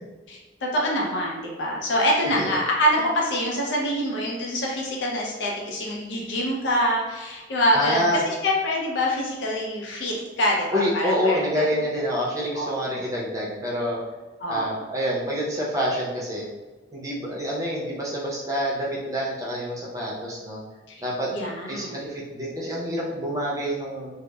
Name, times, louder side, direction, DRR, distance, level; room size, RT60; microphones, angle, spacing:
voice 1, 0.3-11.4 12.5-12.8 14.4-14.7 20.9-21.0 21.3-22.1, equal, 75° left, -2 dB, 0.5 m, -25 dB
voice 2, 7.7-8.2 10.7-14.0 14.5-16.5 16.9-20.6 21.0-21.3 21.7-24.1, equal, 20° right, -5 dB, 0.6 m, -27 dB
2.9 x 2.0 x 2.2 m, 1.2 s
head